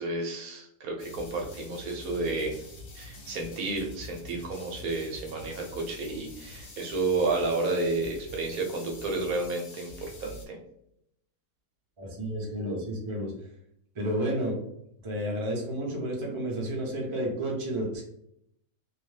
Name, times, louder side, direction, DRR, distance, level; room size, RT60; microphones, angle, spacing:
voice 1, 0.0-2.5 2.9-10.6, right 3 dB, 70° right, 1 dB, 1.0 m, -31 dB
sound 1, 1.0-10.5, left 2 dB, 70° left, 0.5 m, -46 dB
voice 2, 12.0-13.3 13.9-14.6 15.0-18.0, right 1 dB, 45° right, -2 dB, 0.4 m, -31 dB
2.7 x 2.1 x 3.2 m, 0.75 s
omnidirectional pair, 1.7 m